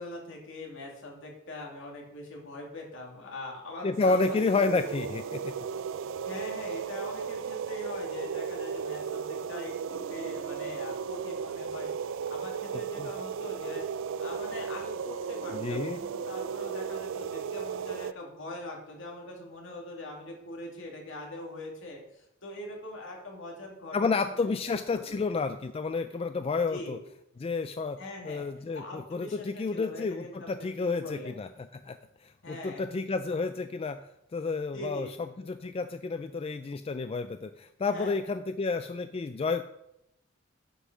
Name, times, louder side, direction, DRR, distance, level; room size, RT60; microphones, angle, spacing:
voice 1, 0.0-4.4 6.3-13.9 14.2-24.5 24.9-25.2 26.7-27.0 28.0-28.4 28.7-31.4 32.4-32.8 34.7-35.1 37.9-38.2, left 1 dB, 65° left, 0 dB, 2.6 m, -42 dB
voice 2, 3.8-5.5 13.0-13.1 15.5-16.0 23.9-27.0 27.4-28.0 28.2-34.0 34.3-35.1 35.4-39.6, left 4 dB, 30° left, 10 dB, 0.3 m, -30 dB
sound 1, 3.9-18.1, right 6 dB, 65° right, 0.4 m, -35 dB
9.9 x 5.6 x 6.0 m, 0.84 s
head